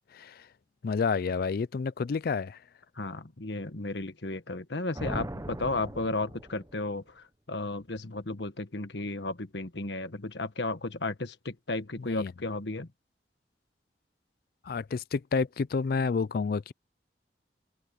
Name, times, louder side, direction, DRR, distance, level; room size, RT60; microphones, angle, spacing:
voice 1, 0.1-0.5 0.8-2.6 12.0-12.3 14.6-16.7, left 5 dB, 55° left, 0.4 m, -29 dB
voice 2, 2.9-12.9, left 2 dB, 80° left, 1.5 m, -34 dB
sound 1, 4.9-6.9, right 1 dB, 20° right, 0.9 m, -39 dB
open air
head